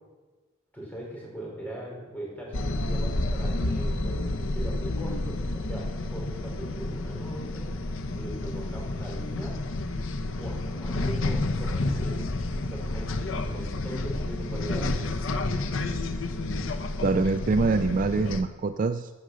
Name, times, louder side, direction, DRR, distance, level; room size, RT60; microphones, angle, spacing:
voice 1, 0.7-4.2 4.5-5.8 6.1-7.7 8.1-9.5 10.4-12.2 12.7-15.0, equal, 10° left, -4 dB, 4.5 m, -39 dB
sound 1, 2.5-18.4, left 2 dB, 80° left, 0.8 m, -30 dB
voice 2, 17.0-19.1, right 3 dB, 40° right, 10 dB, 0.3 m, -25 dB
14.5 x 6.6 x 6.3 m, 1.3 s
head